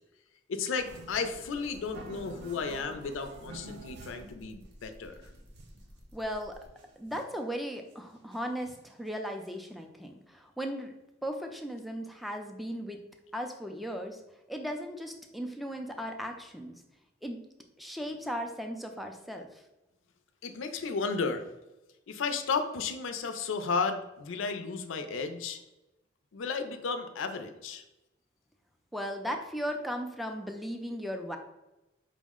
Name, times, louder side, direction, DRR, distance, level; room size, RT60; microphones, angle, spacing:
voice 1, 0.5-5.3 20.4-21.5 22.1-25.6 26.3-27.8, left 5 dB, 80° left, 7 dB, 0.4 m, -33 dB
sound 1, 0.8-4.4 4.8-4.9 5.1-5.9 6.4-6.5 6.7-7.4 7.9-8.0 8.3-9.0 9.5-9.6 9.8-9.9, right 2 dB, 60° right, 0.5 m, -49 dB
sound 2, 0.8-6.7, equal, 80° right, 1.0 m, -56 dB
voice 2, 6.1-6.6 7.0-11.0 11.2-13.0 13.3-14.2 14.5-16.7 17.2-17.4 17.8-19.5 28.9-31.4, equal, ahead, 4 dB, 0.3 m, -37 dB
5.0 x 2.1 x 3.5 m, 0.97 s
head